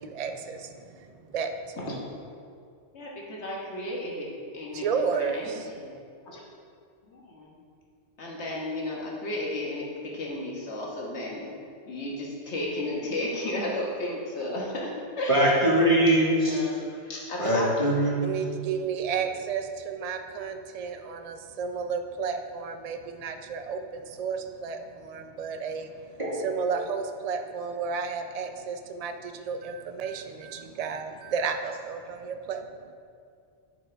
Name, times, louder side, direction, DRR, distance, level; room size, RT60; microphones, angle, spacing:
voice 1, 0.0-1.8 4.7-5.7 18.2-32.9, right 6 dB, 60° right, 6 dB, 0.4 m, -32 dB
voice 2, 2.9-4.8 5.1-6.0 6.3-6.4 7.1-7.6 8.2-11.5 11.9-14.9 15.2-15.5 16.3-16.8 17.0-18.0, left 1 dB, 70° left, -3 dB, 1.6 m, -33 dB
voice 3, 15.3-16.6 17.4-18.4 26.2-26.3, right 1 dB, 30° right, -5 dB, 1.5 m, -22 dB
10.5 x 4.8 x 3.4 m, 2.3 s
omnidirectional pair, 1.2 m